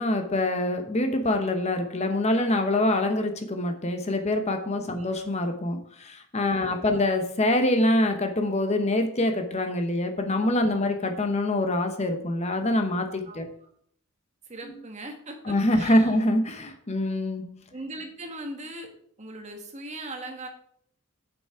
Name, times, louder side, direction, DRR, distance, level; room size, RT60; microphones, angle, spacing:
voice 1, 0.0-13.5 14.6-14.8 15.4-17.7, left 1 dB, 30° left, 6 dB, 0.9 m, -25 dB
voice 2, 6.6-7.0 10.7-11.1 13.2-13.7 14.5-16.2 17.7-18.9 19.2-20.5, right 2 dB, 35° right, 4 dB, 1.4 m, -40 dB
7.0 x 7.0 x 4.8 m, 0.64 s
head